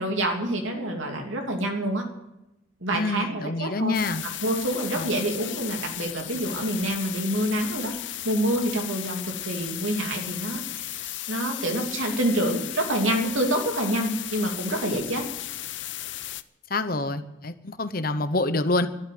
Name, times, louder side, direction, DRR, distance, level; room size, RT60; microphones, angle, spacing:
voice 1, 0.0-2.0 2.8-4.0 4.4-7.9 8.2-15.2, right 1 dB, 80° right, 2 dB, 2.9 m, -27 dB
voice 2, 2.9-4.2 4.9-5.1 16.7-18.9, left 2 dB, 45° left, 11 dB, 1.0 m, -26 dB
sound 1, 3.9-16.4, left 14 dB, 70° left, 0.7 m, -35 dB
12.5 x 12.0 x 9.5 m, 0.94 s
head